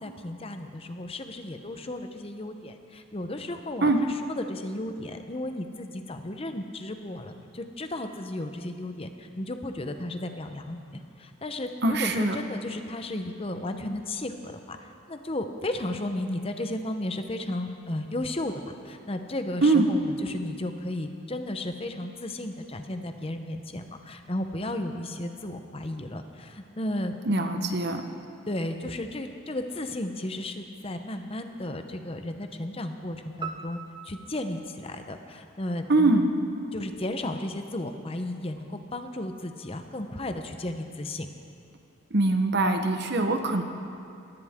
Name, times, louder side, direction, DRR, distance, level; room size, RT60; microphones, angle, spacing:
voice 1, 0.0-4.1 4.4-27.7 28.5-33.8 34.0-36.2 36.7-41.3, left 1 dB, 30° left, 7 dB, 0.8 m, -34 dB
voice 2, 11.8-12.4 19.6-19.9 27.2-28.0 35.9-36.3 42.1-43.6, right 2 dB, 55° right, 5 dB, 1.1 m, -23 dB
sound 1, 33.4-35.9, right 6 dB, 25° right, 0.7 m, -42 dB
20.5 x 16.0 x 3.7 m, 2.6 s
head